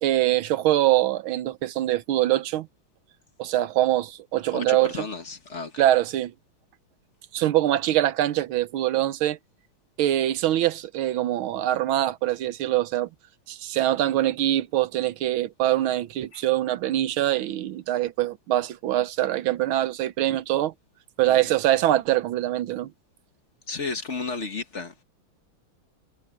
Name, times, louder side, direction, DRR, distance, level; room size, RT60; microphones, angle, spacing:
voice 1, 0.0-2.7 3.4-5.0 5.8-6.3 7.3-9.4 10.0-13.1 13.5-20.7 21.2-22.9, right 13 dB, 80° right, 1.6 m, -23 dB
voice 2, 4.5-5.8 16.3-16.4 21.3-21.4 23.7-25.0, left 4 dB, 40° left, 1.5 m, -33 dB
omnidirectional pair, 2.3 m